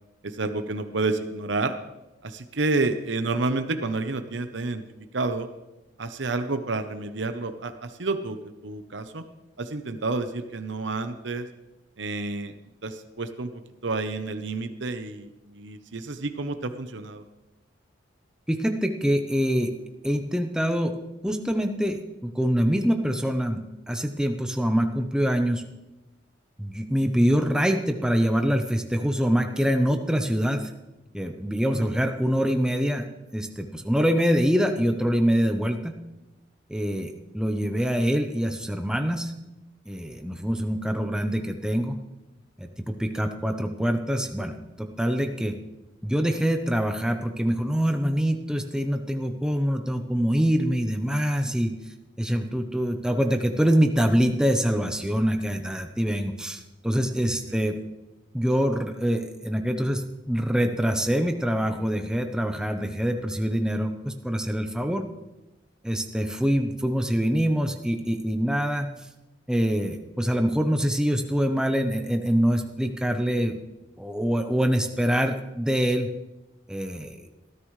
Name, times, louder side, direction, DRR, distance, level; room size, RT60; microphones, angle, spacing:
voice 1, 0.2-1.7 2.2-4.8 5.1-5.5 6.0-8.4 8.6-9.2 9.6-11.5 12.0-12.5 12.8-13.5 13.8-17.2 31.7-31.9 57.5-57.6, right 3 dB, 65° right, 8 dB, 0.9 m, -29 dB
voice 2, 18.5-19.7 20.0-21.0 21.2-23.6 23.9-25.6 26.6-30.7 31.1-33.1 33.3-36.0 36.7-39.3 39.9-42.0 42.6-45.5 46.0-51.7 52.2-57.8 58.3-65.0 65.8-68.9 69.5-73.6 74.0-76.1 76.7-77.2, equal, 5° right, 5 dB, 0.8 m, -25 dB
20.0 x 13.5 x 3.3 m, 1.0 s
head